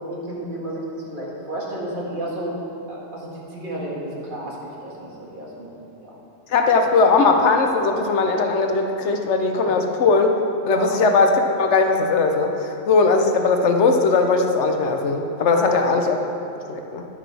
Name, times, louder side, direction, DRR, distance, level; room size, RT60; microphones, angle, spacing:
voice 1, 0.1-2.6 2.9-4.6 4.8-5.7 9.6-9.7 10.8-11.0 15.5-15.8, right 1 dB, 45° right, -5 dB, 2.0 m, -31 dB
voice 2, 6.5-10.3 10.7-16.2 16.7-17.0, left 4 dB, 75° left, 4 dB, 1.1 m, -19 dB
11.0 x 9.9 x 3.4 m, 3.0 s
omnidirectional pair, 1.2 m